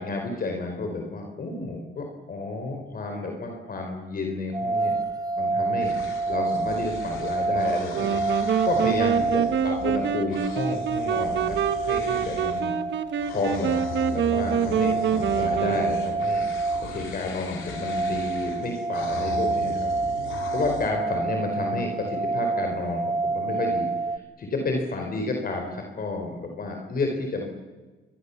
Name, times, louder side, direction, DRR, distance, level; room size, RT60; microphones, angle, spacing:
voice 1, 0.0-4.9 5.4-5.9 6.3-12.7 13.3-13.8 14.1-16.5 16.9-19.9 20.5-27.5, left 3 dB, 45° left, 2 dB, 4.6 m, -31 dB
sound 1, 4.5-24.2, right 3 dB, 20° right, 1.3 m, -28 dB
sound 2, 5.8-12.7 13.2-20.9, left 5 dB, 85° left, 4.4 m, -39 dB
sound 3, 7.9-16.4, right 8 dB, 65° right, 1.3 m, -26 dB
28.5 x 22.5 x 7.2 m, 1.2 s
cardioid pair, 90°, 20 cm